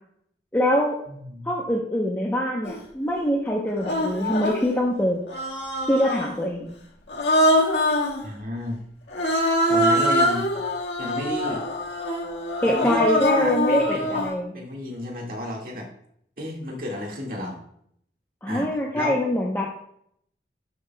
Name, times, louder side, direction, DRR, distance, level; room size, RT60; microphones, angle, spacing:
voice 1, 0.5-1.0 1.4-5.2 5.9-6.7 12.6-14.5 18.4-19.7, left 1 dB, 10° left, -3 dB, 0.8 m, -24 dB
voice 2, 1.1-1.5 8.2-8.8 9.7-10.5 11.0-11.6 12.6-13.0 13.3-14.3 14.5-15.9 16.4-17.6 18.5-18.7 18.9-19.2, left 1 dB, 50° right, -1 dB, 1.9 m, -31 dB
Human voice, 2.6-2.8 3.8-4.7 5.3-6.4 7.1-8.2 9.1-14.4, equal, 85° left, 1.7 m, -23 dB
12.0 x 7.9 x 2.3 m, 0.70 s
head